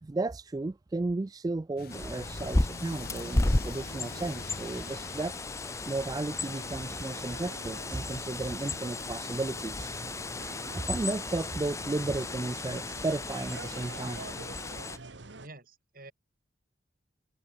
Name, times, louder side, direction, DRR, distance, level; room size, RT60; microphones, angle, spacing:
voice 1, 0.0-5.4 5.9-9.9 10.7-14.2, right 2 dB, 20° right, 0.3 m, -34 dB
sound 1, 1.8-15.0, left 3 dB, 55° left, 4.6 m, -49 dB
Bird, 1.9-15.0, left 2 dB, 15° left, 0.6 m, -34 dB
sound 2, 6.3-15.5, right 3 dB, 75° right, 1.6 m, -46 dB
voice 2, 15.4-16.1, right 2 dB, 50° right, 6.8 m, -49 dB
open air
head